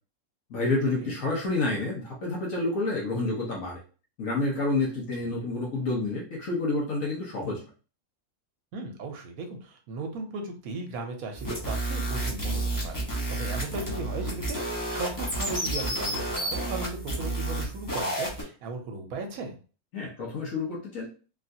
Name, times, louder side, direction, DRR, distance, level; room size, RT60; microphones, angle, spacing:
voice 1, 0.5-3.8 4.2-7.6 19.9-21.1, left 2 dB, 70° left, -3 dB, 1.3 m, -29 dB
voice 2, 8.7-13.0 13.3-19.6, right 3 dB, 85° right, 4 dB, 1.1 m, -37 dB
sound 1, 11.3-18.4, right 1 dB, 15° left, 0.8 m, -31 dB
3.4 x 2.4 x 2.7 m, 0.37 s
omnidirectional pair, 1.5 m